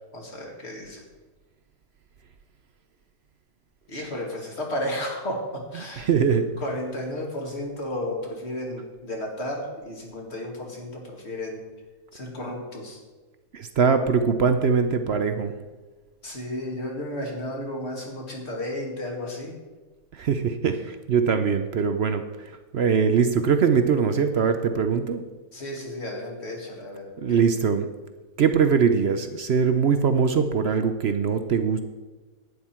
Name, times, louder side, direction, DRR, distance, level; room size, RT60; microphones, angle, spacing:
voice 1, 0.1-1.0 3.9-6.1 6.6-11.7 12.1-13.0 16.2-19.6 25.5-27.5, left 1 dB, 40° left, 0 dB, 2.4 m, -33 dB
voice 2, 6.0-6.5 13.5-15.5 20.1-25.2 27.2-27.9 28.4-31.8, right 6 dB, 60° right, 8 dB, 0.7 m, -22 dB
11.5 x 9.6 x 4.4 m, 1.3 s
omnidirectional pair, 1.7 m